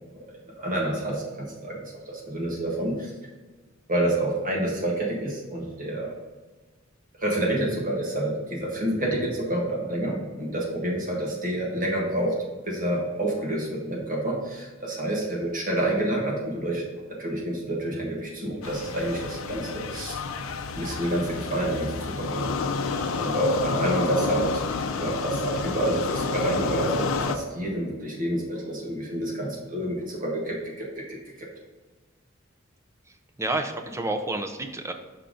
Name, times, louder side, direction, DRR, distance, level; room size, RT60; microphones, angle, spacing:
voice 1, 0.6-1.8 2.1-2.9 3.9-6.1 7.2-12.3 12.6-16.8 17.2-20.2 20.8-24.6 25.0-30.9, right 1 dB, 40° right, -3 dB, 1.5 m, -28 dB
sound 1, 18.6-27.4, left 4 dB, 75° left, 0.5 m, -30 dB
voice 2, 33.1-34.9, right 2 dB, 15° right, 5 dB, 0.5 m, -30 dB
5.7 x 3.9 x 5.0 m, 1.3 s
head